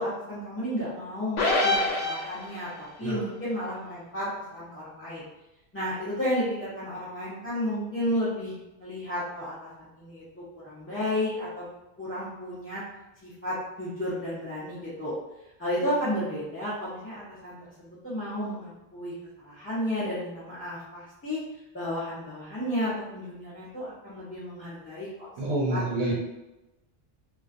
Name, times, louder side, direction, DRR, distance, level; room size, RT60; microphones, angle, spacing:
voice 1, 0.0-5.2 5.7-10.2 10.6-11.7 12.0-12.8 13.2-15.1 15.6-21.4 21.7-25.1 25.7-25.8 26.1-26.2, equal, 20° left, -11 dB, 0.4 m, -32 dB
sound 1, 1.4-2.8, left 2 dB, 80° left, 0.9 m, -25 dB
voice 2, 25.4-26.1, right 1 dB, 85° right, -3 dB, 0.8 m, -27 dB
2.4 x 2.1 x 2.5 m, 0.99 s
omnidirectional pair, 1.1 m